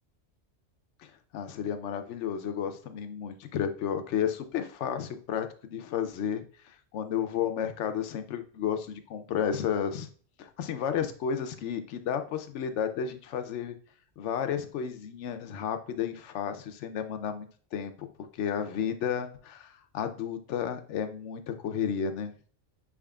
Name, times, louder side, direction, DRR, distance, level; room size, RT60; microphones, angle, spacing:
voice 1, 1.0-5.5 5.7-10.1 10.4-13.7 14.2-22.3, left 8 dB, 75° left, 8 dB, 0.9 m, -32 dB
5.8 x 3.6 x 2.3 m, 0.43 s
omnidirectional pair, 1.2 m